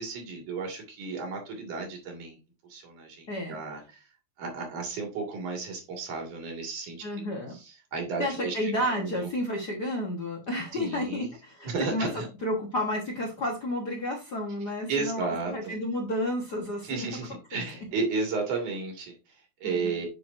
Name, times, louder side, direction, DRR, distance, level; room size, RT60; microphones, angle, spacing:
voice 1, 0.0-2.4 2.7-4.0 4.4-7.1 7.5-9.3 10.7-11.3 11.6-12.3 14.9-15.7 16.8-20.1, right 4 dB, 85° right, 1 dB, 3.5 m, -33 dB
voice 2, 7.0-7.6 8.2-12.1 12.4-17.1 19.6-19.9, left 1 dB, 55° left, -1 dB, 1.1 m, -31 dB
7.4 x 5.9 x 2.5 m, 0.30 s
omnidirectional pair, 3.4 m